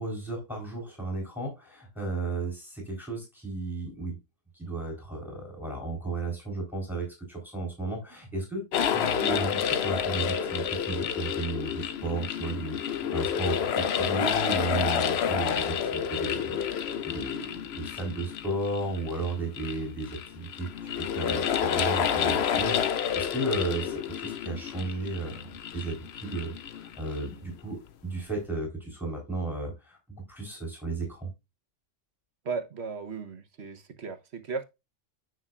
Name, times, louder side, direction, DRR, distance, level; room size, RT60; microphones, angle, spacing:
voice 1, 0.0-4.2 4.5-20.7 21.0-31.3, right 3 dB, ahead, 3.9 m, -34 dB
sound 1, 8.7-27.3, left 8 dB, 60° left, 0.9 m, -29 dB
voice 2, 32.4-34.6, right 5 dB, 60° right, 1.3 m, -36 dB
9.8 x 6.2 x 2.4 m
omnidirectional pair, 1.3 m